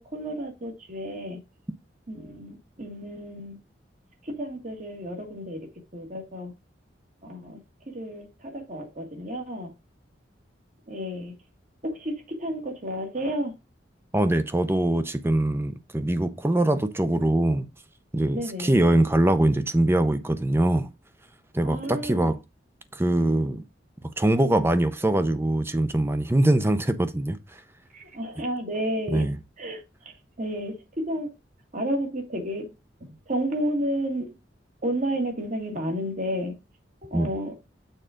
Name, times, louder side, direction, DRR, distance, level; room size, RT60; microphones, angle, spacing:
voice 1, 0.0-1.4 2.1-3.6 4.2-5.7 5.9-6.5 7.2-7.6 7.9-9.7 10.9-11.3 11.8-13.5 18.3-18.8 21.6-22.4 27.9-29.3 29.6-29.8 30.4-31.3 31.7-32.7 33.0-34.3 34.8-36.6 37.1-37.5, equal, 45° right, 1.9 m, -31 dB
voice 2, 14.1-17.7 18.1-20.9 21.5-22.4 22.9-23.6 24.2-27.6 29.1-29.4 37.1-37.3, right 1 dB, 15° right, 0.6 m, -23 dB
6.6 x 3.7 x 5.0 m
head